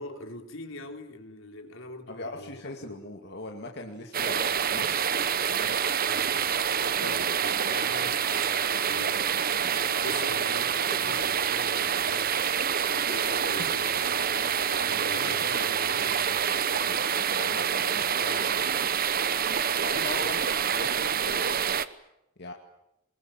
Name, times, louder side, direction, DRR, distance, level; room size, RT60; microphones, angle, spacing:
voice 1, 0.0-3.0 6.0-6.3 7.0-12.4 12.8-16.9 20.2-20.4, left 1 dB, 70° left, 5 dB, 3.6 m, -43 dB
voice 2, 2.1-5.0 5.5-5.7 6.9-7.2 14.9-16.0 16.8-16.9 17.3-18.9 19.8-20.5 20.7-21.7 22.4-22.5, left 2 dB, 55° left, 2 dB, 2.4 m, -40 dB
sound 1, 4.1-21.9, right 7 dB, 45° right, 1.0 m, -27 dB
24.5 x 22.0 x 9.0 m, 0.83 s
head